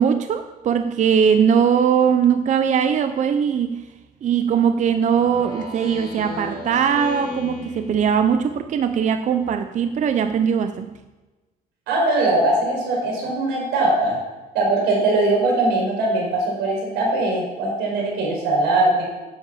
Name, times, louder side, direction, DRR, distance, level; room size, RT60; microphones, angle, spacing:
voice 1, 0.0-3.8 4.2-10.9, right 7 dB, 45° right, 0.7 m, -20 dB
Speech synthesizer, 5.2-8.7, left 2 dB, 20° left, 4.3 m, -35 dB
voice 2, 11.9-14.2 14.5-19.0, right 2 dB, 90° right, 4.9 m, -20 dB
9.9 x 8.5 x 7.0 m
cardioid pair, 110°, 17 cm